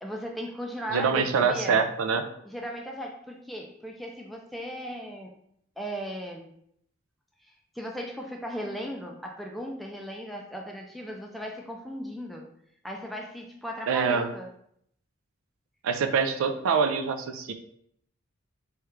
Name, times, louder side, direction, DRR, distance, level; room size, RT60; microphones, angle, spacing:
voice 1, 0.0-1.8 2.4-5.3 5.8-6.5 7.4-7.5 7.8-12.5 12.8-14.5, equal, ahead, 0 dB, 0.3 m, -37 dB
voice 2, 0.9-2.3 13.9-14.3 15.8-17.5, right 5 dB, 90° right, 8 dB, 0.3 m, -25 dB
3.2 x 2.4 x 3.0 m, 0.70 s
head